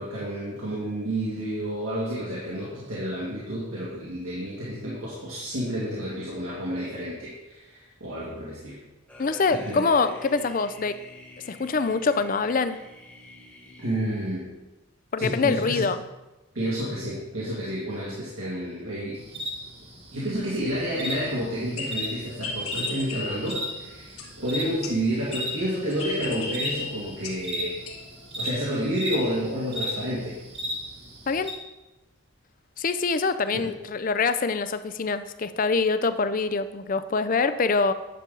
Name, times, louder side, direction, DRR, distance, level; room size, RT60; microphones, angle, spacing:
voice 1, 0.0-8.8 9.5-9.8 13.8-14.5 15.2-15.9 16.5-19.2 20.1-27.8 28.4-30.4 33.5-33.7, equal, 80° right, -7 dB, 2.1 m, -30 dB
sound 1, 9.1-14.4, left 2 dB, 10° left, 1.3 m, -47 dB
voice 2, 9.2-10.9 11.5-12.8 15.1-16.0 31.3-31.5 32.8-37.9, left 4 dB, 40° left, 12 dB, 0.4 m, -24 dB
sound 2, 19.1-31.5, left 1 dB, 25° right, 1.1 m, -36 dB
sound 3, 21.6-24.5 24.8-28.1 28.4-28.8, left 3 dB, 90° left, 1.3 m, -36 dB
10.0 x 7.0 x 3.8 m, 1.0 s
head